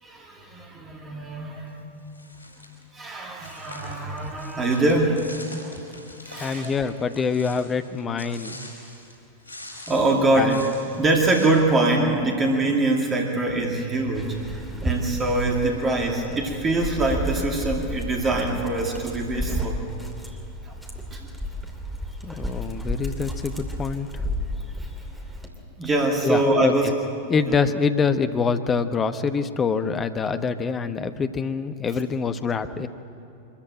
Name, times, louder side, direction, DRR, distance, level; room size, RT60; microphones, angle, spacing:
voice 1, 0.0-1.7 2.9-5.3 6.2-6.7 9.9-10.6 11.0-19.8 20.7-20.8 21.1-21.3 25.8-26.9 27.2-27.3, right 2 dB, 20° right, 0 dB, 2.5 m, -23 dB
sound 1, 2.1-2.8 3.4-9.1 9.4-11.5, left 1 dB, 90° right, 4.6 m, -43 dB
voice 2, 6.3-8.7 10.3-10.5 22.2-24.1 26.2-26.7 27.3-32.9, left 5 dB, 20° left, 9 dB, 1.0 m, -25 dB
Dog, 14.1-25.5, equal, 5° right, 2.7 m, -32 dB
24.0 x 14.5 x 8.8 m, 2.7 s
figure-of-eight pair, 90°, 0 cm